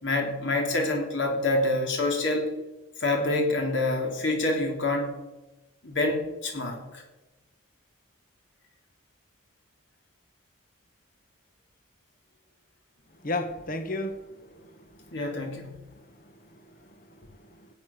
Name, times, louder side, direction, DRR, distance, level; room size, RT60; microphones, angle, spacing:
voice 1, 0.0-2.5 3.0-5.2 5.8-7.0 15.1-15.7, left 2 dB, 60° left, 1 dB, 3.6 m, -27 dB
voice 2, 13.2-15.2 15.9-17.7, left 2 dB, 40° left, 7 dB, 1.5 m, -36 dB
16.5 x 9.5 x 6.1 m, 1.0 s
head